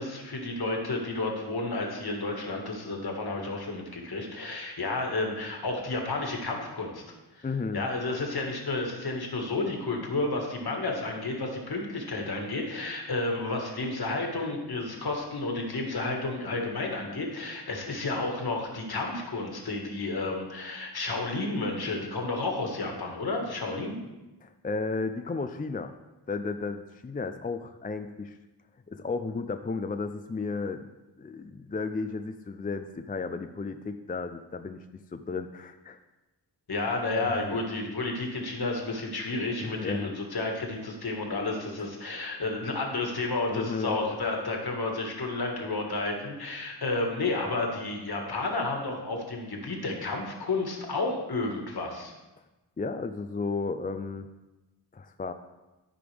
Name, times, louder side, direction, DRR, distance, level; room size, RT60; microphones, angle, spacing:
voice 1, 0.0-7.0 7.3-7.5 7.7-24.0 36.7-52.1, left 2 dB, 60° left, 1 dB, 1.8 m, -31 dB
voice 2, 7.4-7.8 24.4-25.9 26.3-28.4 28.9-30.9 31.2-34.8 35.1-36.0 37.2-37.6 39.6-40.1 43.5-44.0 52.8-54.3 54.9-55.3, left 4 dB, 20° left, 8 dB, 0.4 m, -33 dB
13.5 x 5.2 x 3.4 m, 1.1 s
wide cardioid pair, 85°, 42 cm